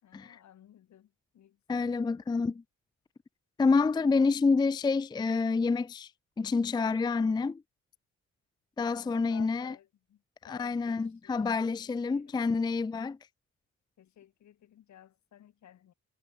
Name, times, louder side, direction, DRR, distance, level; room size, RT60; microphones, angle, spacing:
voice 1, 0.0-2.0 3.9-4.3 9.0-12.4 14.0-15.9, left 11 dB, 65° left, 3.2 m, -56 dB
voice 2, 1.7-2.6 3.6-6.1 6.4-7.6 8.8-9.7 10.4-13.2, left 4 dB, 15° left, 0.4 m, -28 dB
cardioid pair, 90°, 30 cm